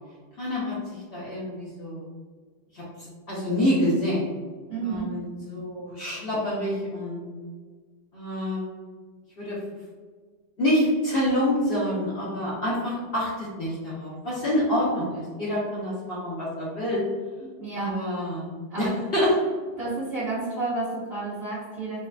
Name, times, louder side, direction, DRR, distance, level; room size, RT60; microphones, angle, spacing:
voice 1, 0.4-2.0 2.7-4.3 4.8-7.2 8.1-8.7 9.4-9.6 10.6-17.0 17.8-18.4 18.8-19.4, left 1 dB, 65° left, -8 dB, 0.5 m, -27 dB
voice 2, 4.7-5.1 17.4-17.9 18.7-19.0 19.8-22.1, right 3 dB, 55° right, -9 dB, 0.6 m, -31 dB
5.4 x 2.3 x 2.4 m, 1.5 s
omnidirectional pair, 2.3 m